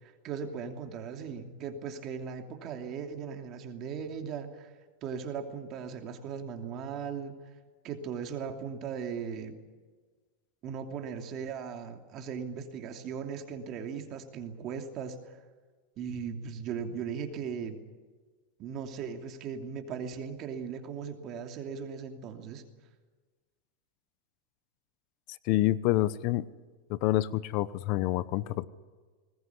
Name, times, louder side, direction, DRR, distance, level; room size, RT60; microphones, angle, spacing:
voice 1, 0.0-4.7 5.0-7.4 7.8-9.6 10.6-15.4 16.0-17.8 18.6-22.6, right 6 dB, 35° right, 5 dB, 2.8 m, -38 dB
voice 2, 25.4-26.5 26.9-28.6, left 16 dB, 45° left, 16 dB, 0.9 m, -27 dB
20.5 x 20.5 x 9.7 m, 1.4 s
supercardioid pair, 145°, 0 cm